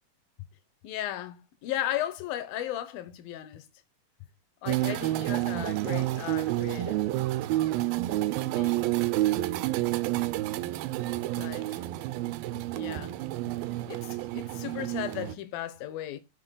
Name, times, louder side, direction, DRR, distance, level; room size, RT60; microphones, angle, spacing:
voice 1, 0.8-3.7 4.6-7.1 8.4-8.9 11.4-11.8 12.7-13.1 13.9-16.2, left 12 dB, 85° left, 2.6 m, -36 dB
sound 1, 4.7-15.3, right 16 dB, 90° right, 2.4 m, -29 dB
15.0 x 6.2 x 2.2 m
omnidirectional pair, 4.1 m